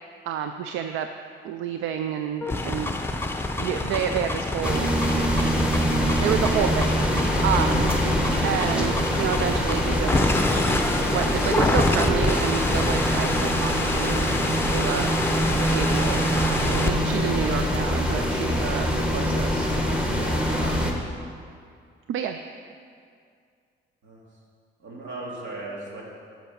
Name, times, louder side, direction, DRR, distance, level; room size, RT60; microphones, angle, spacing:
voice 1, 0.2-1.1 1.4-3.0 3.6-4.9 6.2-7.9 8.4-10.5 11.1-14.2 14.6-15.1 15.6-19.7 20.5-21.0 22.1-22.4, right 8 dB, 90° right, 7 dB, 0.4 m, -29 dB
sound 1, 2.4-16.9, left 2 dB, 10° left, 0.7 m, -27 dB
sound 2, 4.6-20.9, equal, 5° right, 1.4 m, -24 dB
voice 2, 16.6-16.9 20.2-20.4 24.0-24.2 24.8-26.0, right 2 dB, 70° right, -3 dB, 2.4 m, -37 dB
10.5 x 6.1 x 5.7 m, 2.3 s
cardioid pair, 90°, 20 cm